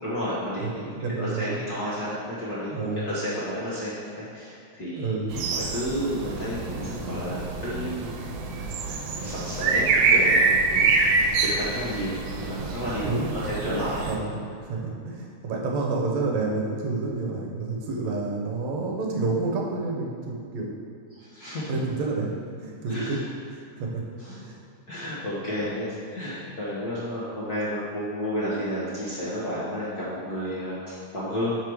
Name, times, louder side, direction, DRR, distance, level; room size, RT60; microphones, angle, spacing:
voice 1, 0.0-0.8 1.2-8.2 8.8-13.2 13.4-14.1 21.1-21.7 22.9-23.2 24.2-24.4 24.9-31.6, equal, 60° left, -10 dB, 1.0 m, -32 dB
voice 2, 0.6-1.6 2.7-3.0 4.9-5.4 13.0-13.8 14.0-20.7 21.7-22.3 22.6-23.2 23.5-24.6, right 3 dB, 75° right, -1 dB, 2.0 m, -29 dB
sound 1, 5.3-14.2, right 4 dB, 90° right, 2.0 m, -25 dB
5.7 x 4.8 x 4.6 m, 2.5 s
omnidirectional pair, 3.3 m